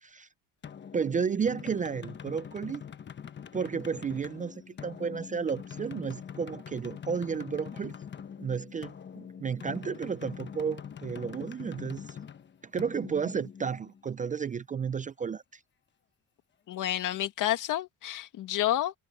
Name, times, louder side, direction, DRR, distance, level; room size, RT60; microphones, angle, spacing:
sound 1, 0.6-14.2, left 8 dB, 30° left, 1.2 m, -44 dB
voice 1, 0.9-2.8 3.5-8.0 8.4-12.2 12.6-15.6, right 6 dB, 25° right, 0.4 m, -32 dB
voice 2, 16.7-18.9, left 13 dB, 65° left, 2.1 m, -29 dB
cardioid pair, 140°, 34 cm